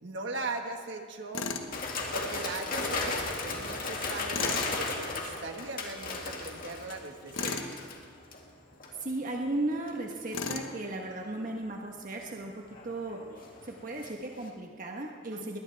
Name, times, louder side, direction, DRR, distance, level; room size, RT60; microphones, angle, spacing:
voice 1, 0.0-1.5 2.1-7.6 15.3-15.6, right 3 dB, 65° right, 3 dB, 1.6 m, -39 dB
Tools, 1.3-1.7 4.3-4.7 7.3-7.7 10.3-10.7, left 4 dB, 90° left, 1.3 m, -34 dB
sound 1, 1.7-8.4 8.8-9.1 9.9-10.3 12.5-14.1 14.4-14.5, left 3 dB, 45° left, 2.1 m, -35 dB
voice 2, 9.0-15.6, right 2 dB, 45° right, 0 dB, 1.3 m, -36 dB
21.5 x 18.5 x 3.5 m, 2.2 s
head